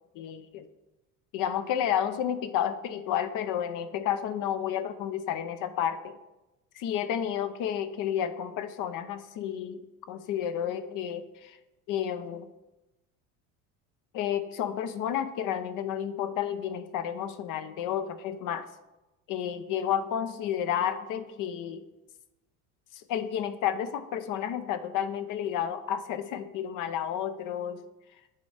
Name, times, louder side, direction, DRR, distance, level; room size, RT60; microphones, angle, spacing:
voice 1, 0.1-0.7 1.3-6.2 6.7-9.8 10.1-11.6 11.9-12.5 14.1-18.7 19.3-21.8 22.9-27.8, left 9 dB, 60° left, 10 dB, 0.9 m, -31 dB
10.0 x 4.2 x 5.0 m, 1.0 s
supercardioid pair, 110°, 36 cm